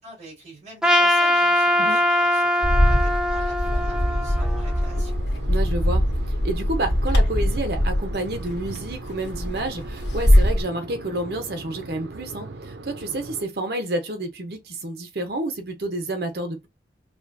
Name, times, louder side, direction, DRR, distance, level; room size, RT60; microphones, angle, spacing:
voice 1, 0.0-5.2, right 2 dB, 40° right, 2.6 m, -44 dB
Trumpet, 0.8-5.1, left 1 dB, 5° right, 0.4 m, -22 dB
Bird, 2.6-10.6, equal, 90° left, 1.4 m, -22 dB
sound 1, 3.6-13.4, right 3 dB, 85° right, 0.6 m, -39 dB
voice 2, 5.5-6.1 6.4-16.7, right 1 dB, 65° right, 0.9 m, -29 dB
4.7 x 2.3 x 2.7 m
head